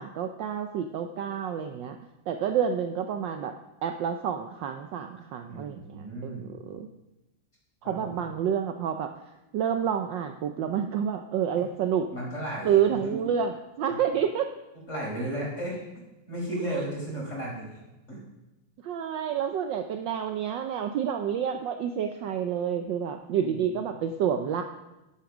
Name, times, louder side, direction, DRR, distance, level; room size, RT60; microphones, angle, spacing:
voice 1, 0.0-2.0 2.3-3.5 3.8-6.9 7.8-9.1 9.5-12.1 12.6-14.5 16.7-16.9 18.8-24.6, right 8 dB, 70° right, 6 dB, 1.2 m, -29 dB
voice 2, 5.5-6.5 7.8-8.2 12.1-13.3 14.9-15.8 16.3-17.8 18.1-18.2 23.4-23.8, right 1 dB, 30° left, -4 dB, 4.8 m, -35 dB
11.5 x 8.8 x 6.0 m, 1.0 s
omnidirectional pair, 2.4 m